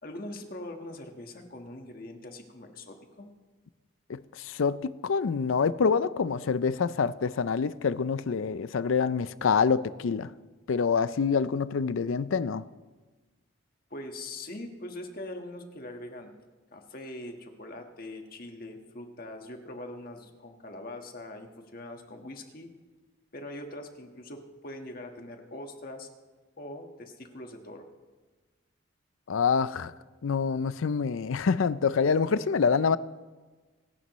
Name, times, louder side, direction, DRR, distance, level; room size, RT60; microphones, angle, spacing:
voice 1, 0.0-3.3 13.9-16.3 16.7-22.7 23.3-26.1 26.6-27.9, left 1 dB, 45° left, 1.5 m, -42 dB
voice 2, 4.1-10.3 10.7-12.7 29.3-29.9 30.2-33.0, left 5 dB, 80° left, 0.5 m, -26 dB
26.5 x 11.5 x 3.1 m
head